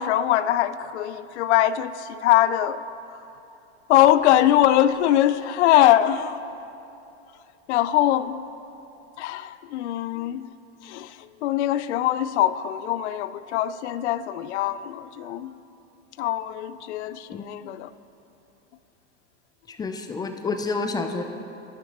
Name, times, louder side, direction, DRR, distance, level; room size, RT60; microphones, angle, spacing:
voice 1, 0.0-2.8 3.1-3.2 3.9-6.4 7.7-8.4 9.2-10.5 10.8-15.5 16.2-17.9, left 12 dB, 75° left, 15 dB, 0.5 m, -22 dB
voice 2, 19.7-21.2, left 3 dB, 10° left, 6 dB, 0.4 m, -29 dB
12.0 x 9.6 x 2.9 m, 2.8 s
hypercardioid pair, 115°, 34 cm